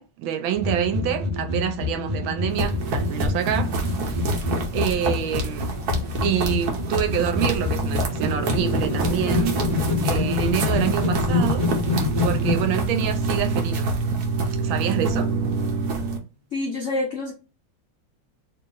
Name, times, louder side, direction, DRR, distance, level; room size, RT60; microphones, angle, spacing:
voice 1, 0.0-3.7 4.1-4.3 4.7-5.8 6.2-9.6 10.0-11.7 12.2-13.9 14.6-15.3, right 9 dB, 80° right, 1.4 m, -27 dB
sound 1, 0.5-12.7, left 3 dB, 25° right, 1.0 m, -26 dB
sound 2, 2.5-16.2, right 2 dB, 60° right, 1.1 m, -26 dB
voice 2, 16.5-17.3, left 2 dB, 70° left, 0.7 m, -27 dB
3.0 x 2.9 x 3.8 m
omnidirectional pair, 2.2 m